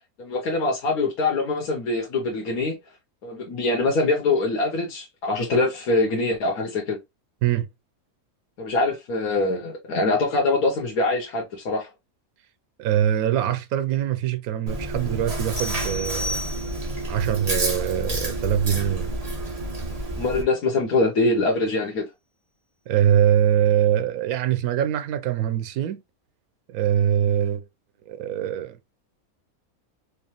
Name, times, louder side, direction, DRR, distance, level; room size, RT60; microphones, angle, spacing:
voice 1, 0.2-2.8 3.2-7.0 8.6-11.9 20.2-22.0, left 2 dB, 80° left, 1.6 m, -23 dB
voice 2, 12.8-16.4 17.1-19.1 22.9-26.0 26.7-27.6 28.1-28.8, right 10 dB, 85° right, 1.1 m, -23 dB
Chewing mastication, 14.7-20.4, right 1 dB, 30° right, 1.1 m, -29 dB
sound 1, 15.6-17.1, left 1 dB, 55° left, 1.2 m, -33 dB
4.7 x 2.5 x 2.9 m
omnidirectional pair, 1.5 m